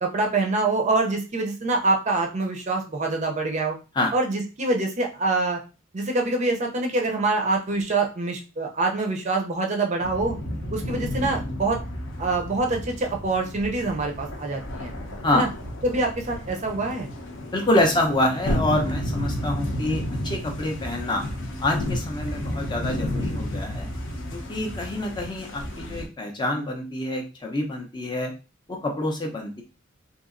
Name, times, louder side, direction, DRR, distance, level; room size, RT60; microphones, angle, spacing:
voice 1, 0.0-3.8 4.1-5.6 5.9-10.4 10.7-14.9 15.3-15.5 15.8-17.1, right 3 dB, 35° right, 2 dB, 0.5 m, -25 dB
sound 1, 10.0-26.1, left 1 dB, 60° left, 0.7 m, -32 dB
voice 2, 17.5-21.2 21.6-23.9 24.3-28.3 28.7-29.6, left 1 dB, 20° left, 2 dB, 0.5 m, -26 dB
2.9 x 2.7 x 2.5 m, 0.31 s
head